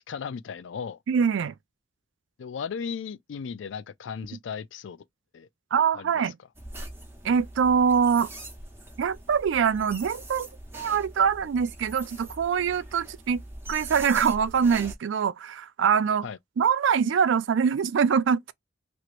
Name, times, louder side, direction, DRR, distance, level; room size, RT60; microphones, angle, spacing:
voice 1, 0.0-1.0 2.4-5.0 5.3-5.5 5.9-6.3 16.2-16.4, left 6 dB, 75° left, 0.4 m, -36 dB
voice 2, 1.1-1.6 5.7-6.3 7.2-8.3 9.0-10.5 10.7-13.4 13.7-16.3 16.6-18.5, right 6 dB, 75° right, 0.4 m, -24 dB
sound 1, 6.5-14.9, right 1 dB, 15° right, 1.0 m, -42 dB
3.0 x 2.9 x 2.4 m
head